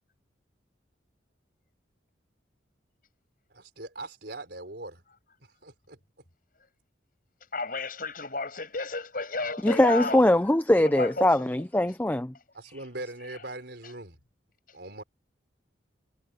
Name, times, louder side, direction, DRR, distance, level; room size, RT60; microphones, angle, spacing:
voice 1, 3.5-5.0 5.6-6.0 12.5-14.2 14.7-15.0, right 2 dB, 60° right, 4.8 m, -40 dB
voice 2, 7.5-10.3 10.8-11.5, left 3 dB, 50° left, 6.5 m, -32 dB
voice 3, 9.6-12.3, left 1 dB, 10° left, 0.4 m, -22 dB
head